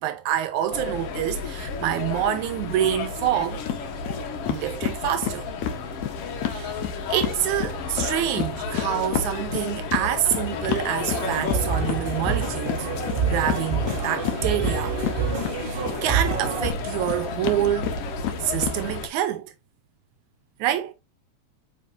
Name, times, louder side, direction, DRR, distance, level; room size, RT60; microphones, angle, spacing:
voice 1, 0.0-3.6 4.5-5.5 6.5-6.8 7.1-12.9 13.2-15.0 15.6-18.0 18.4-19.5 20.6-20.9, right 11 dB, 85° right, 2.1 m, -26 dB
sound 1, 0.7-19.1, left 4 dB, 60° left, 1.9 m, -32 dB
sound 2, 3.7-4.2 4.5-7.4 7.6-16.0 16.3-18.8, left 9 dB, 80° left, 2.1 m, -30 dB
sound 3, 11.1-16.7, right 5 dB, 55° right, 0.6 m, -28 dB
8.5 x 4.4 x 2.6 m
omnidirectional pair, 3.3 m